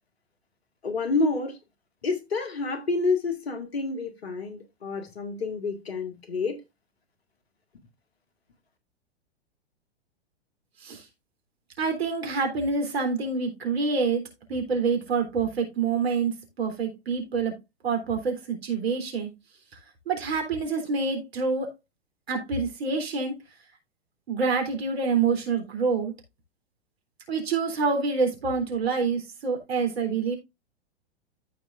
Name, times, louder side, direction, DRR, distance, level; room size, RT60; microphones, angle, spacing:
voice 1, 0.8-1.6 2.0-6.6, left 3 dB, 65° left, 2.1 m, -28 dB
voice 2, 11.8-17.6 17.8-19.3 20.1-21.7 22.3-23.4 24.3-26.1 27.3-30.4, right 4 dB, 65° right, 3.6 m, -27 dB
14.5 x 4.8 x 2.5 m
figure-of-eight pair, 105°, 33 cm